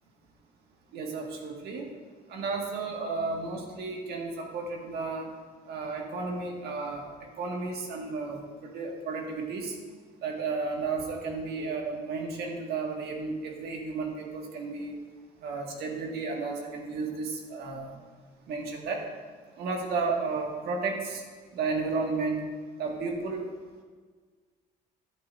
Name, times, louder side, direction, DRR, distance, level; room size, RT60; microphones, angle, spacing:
voice 1, 0.9-1.9 2.3-5.3 5.7-9.7 10.2-15.0 15.4-18.0 18.5-19.0 19.6-21.2 21.5-22.4 22.8-23.5, right 4 dB, 70° right, 0 dB, 1.9 m, -33 dB
13.5 x 8.3 x 2.6 m, 1.5 s
cardioid pair, 110°, 17 cm